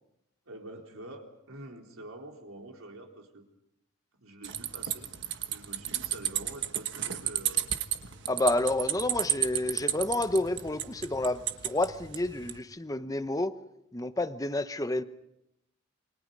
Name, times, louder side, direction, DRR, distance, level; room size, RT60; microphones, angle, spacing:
voice 1, 0.5-3.4 4.2-5.1 5.5-7.7, right 1 dB, 80° right, 2 dB, 3.9 m, -46 dB
sound 1, 4.4-12.6, right 11 dB, 60° right, 1.4 m, -33 dB
voice 2, 8.3-13.6 13.9-15.0, left 2 dB, 15° left, 11 dB, 0.9 m, -29 dB
28.5 x 24.5 x 5.4 m, 0.84 s
head